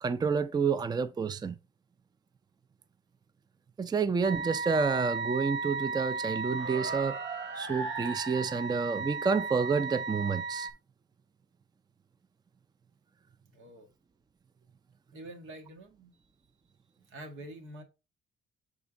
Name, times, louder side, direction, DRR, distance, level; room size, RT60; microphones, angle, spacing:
voice 1, 0.0-1.6 3.8-7.2 7.5-10.7, right 5 dB, 20° right, 0.4 m, -29 dB
sound 1, 4.2-10.7, right 4 dB, 65° right, 1.0 m, -35 dB
voice 2, 13.5-13.9 15.1-16.2 17.1-17.8, right 1 dB, 80° right, 1.6 m, -46 dB
7.3 x 3.6 x 3.9 m
cardioid pair, 90°, 20 cm